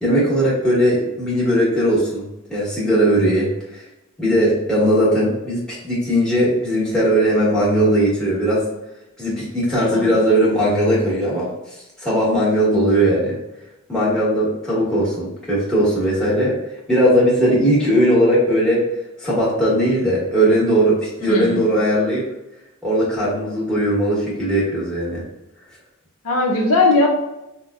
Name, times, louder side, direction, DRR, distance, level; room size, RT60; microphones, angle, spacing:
voice 1, 0.0-3.8 4.2-8.6 9.2-13.4 13.9-16.5 16.9-18.8 19.2-22.2 22.8-25.2, equal, 5° left, -7 dB, 1.2 m, -18 dB
voice 2, 21.3-21.7 26.2-27.1, left 2 dB, 85° left, 0 dB, 0.7 m, -18 dB
5.5 x 2.2 x 2.3 m, 0.95 s
head